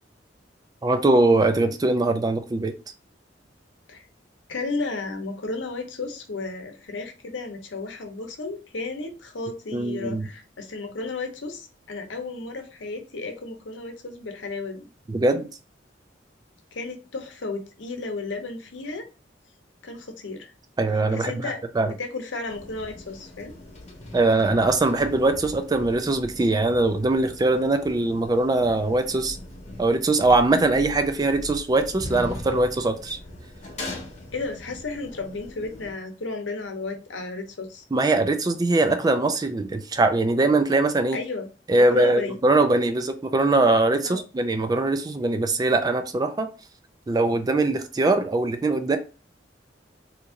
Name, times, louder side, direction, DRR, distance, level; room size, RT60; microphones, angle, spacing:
voice 1, 0.8-2.7 9.7-10.3 15.1-15.5 20.8-21.9 24.1-29.4 29.8-33.2 37.9-41.2 41.7-46.5 47.1-49.0, right 2 dB, 20° right, 0.3 m, -22 dB
voice 2, 4.5-14.8 16.7-19.1 19.8-20.5 21.1-21.6 22.0-23.5 34.3-37.8 41.1-41.5 41.9-42.4 44.0-44.2, left 3 dB, 80° left, 0.8 m, -33 dB
sound 1, 22.5-35.9, left 1 dB, 40° left, 0.9 m, -40 dB
2.9 x 2.5 x 3.7 m
head